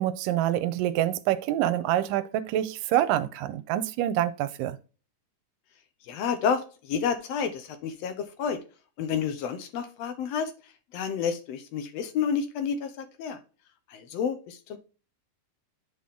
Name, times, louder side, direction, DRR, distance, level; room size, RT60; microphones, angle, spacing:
voice 1, 0.0-4.8, right 12 dB, 85° right, 2.2 m, -26 dB
voice 2, 6.1-8.6 9.0-10.5 10.9-13.4 13.9-14.8, left 7 dB, 80° left, 1.5 m, -30 dB
11.0 x 3.9 x 3.5 m
omnidirectional pair, 3.9 m